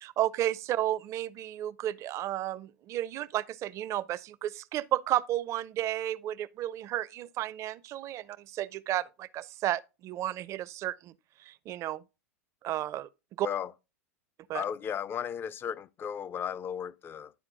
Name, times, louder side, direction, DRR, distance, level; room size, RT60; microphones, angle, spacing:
voice 1, 0.0-11.1 11.4-12.0 12.6-13.1 13.4-13.5 14.5-14.6, right 13 dB, 40° right, 0.5 m, -32 dB
voice 2, 14.5-17.3, left 8 dB, 25° left, 0.4 m, -35 dB
11.5 x 4.4 x 3.7 m
hypercardioid pair, 95°, 8 cm